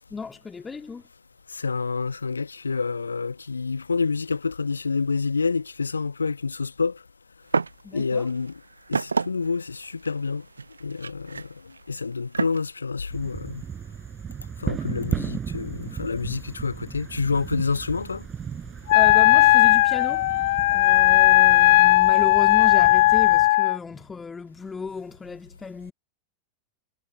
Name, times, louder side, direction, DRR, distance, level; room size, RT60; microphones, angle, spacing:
voice 1, 0.1-1.0 7.8-8.3 18.9-20.3 20.7-25.9, left 5 dB, 15° left, 1.8 m, -34 dB
voice 2, 1.5-6.9 7.9-8.5 8.9-10.4 10.8-11.5 11.9-13.6 14.6-18.2, left 4 dB, 75° left, 1.0 m, -28 dB
sound 1, 7.5-7.8 8.1-12.6, right 4 dB, 75° right, 0.6 m, -29 dB
sound 2, 13.1-23.5, right 7 dB, 20° right, 5.0 m, -36 dB
Wind instrument woodwind instrument, 18.9-23.8, left 17 dB, 55° left, 2.1 m, -17 dB
figure-of-eight pair, 90°, 0 cm